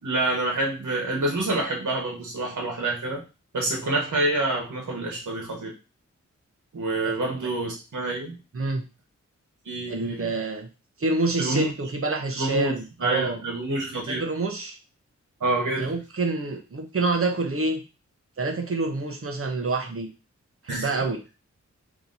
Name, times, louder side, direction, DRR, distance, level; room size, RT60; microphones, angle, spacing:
voice 1, 0.0-3.2 3.5-5.7 6.7-8.4 9.6-10.3 11.4-11.7 12.4-14.2 15.4-15.9 20.7-20.9, right 2 dB, 85° right, -1 dB, 1.4 m, -27 dB
voice 2, 9.9-10.7 11.0-13.4 14.1-14.8 15.8-17.8 18.4-20.1 20.6-21.2, right 3 dB, 50° right, 3 dB, 0.9 m, -27 dB
3.0 x 3.0 x 4.0 m, 0.30 s
wide cardioid pair, 95°, 30 cm